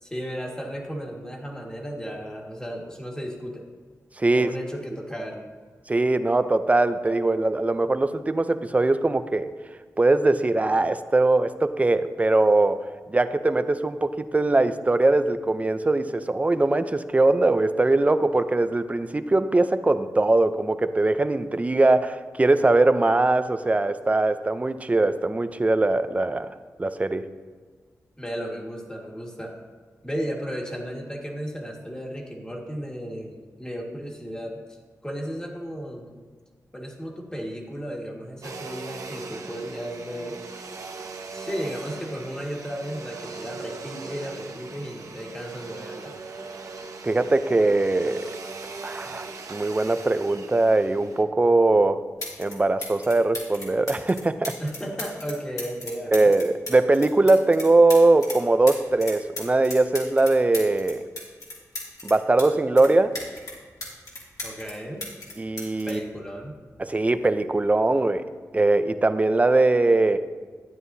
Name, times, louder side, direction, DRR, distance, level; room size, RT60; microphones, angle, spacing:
voice 1, 0.0-3.7 4.3-5.5 28.2-29.6 30.0-36.2 36.7-40.4 41.3-46.1 54.6-56.3 64.4-65.1 65.9-66.6, equal, 10° left, 0 dB, 1.7 m, -34 dB
voice 2, 4.2-4.5 5.9-9.5 10.0-12.8 13.1-27.2 47.0-48.3 48.8-52.1 52.4-54.5 56.1-61.0 62.0-63.2 65.4-66.0 66.8-68.2 68.5-70.2, right 2 dB, 25° right, 11 dB, 0.5 m, -21 dB
Domestic sounds home sounds, 38.4-51.2, right 4 dB, 75° right, 0.9 m, -39 dB
sound 1, 52.2-52.6 52.8-58.4 58.7-62.5 62.8-64.7 65.0-66.8 67.8-68.0, left 2 dB, 75° left, 2.7 m, -36 dB
12.5 x 9.3 x 2.7 m, 1.5 s
wide cardioid pair, 95°, 6 cm